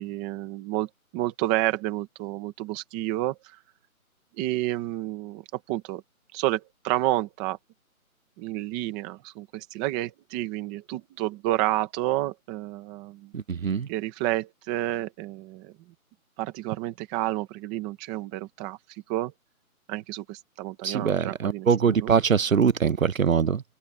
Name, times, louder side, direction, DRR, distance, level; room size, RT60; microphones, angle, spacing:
voice 1, 0.0-3.6 4.4-6.0 6.3-7.6 8.4-13.3 13.9-15.7 16.4-18.8 19.1-19.3 19.9-22.1, right 16 dB, 5° right, 1.0 m, -30 dB
voice 2, 13.3-13.9 20.8-23.6, right 6 dB, 65° right, 1.0 m, -23 dB
open air
figure-of-eight pair, 165°, 43 cm